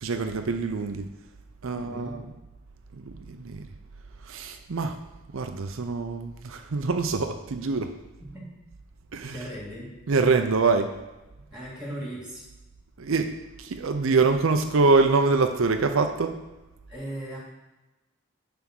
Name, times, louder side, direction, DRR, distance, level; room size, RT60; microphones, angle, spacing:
voice 1, 0.0-1.1 1.6-2.2 3.1-3.7 4.3-5.0 5.3-7.9 9.1-9.4 10.1-10.9 13.0-13.3 13.6-16.4, right 4 dB, 75° right, 7 dB, 0.6 m, -24 dB
voice 2, 1.7-2.1 8.2-8.5 9.3-9.9 11.5-12.4 16.9-17.4, right 1 dB, 5° right, -5 dB, 2.5 m, -37 dB
9.4 x 3.5 x 6.1 m, 1.0 s
head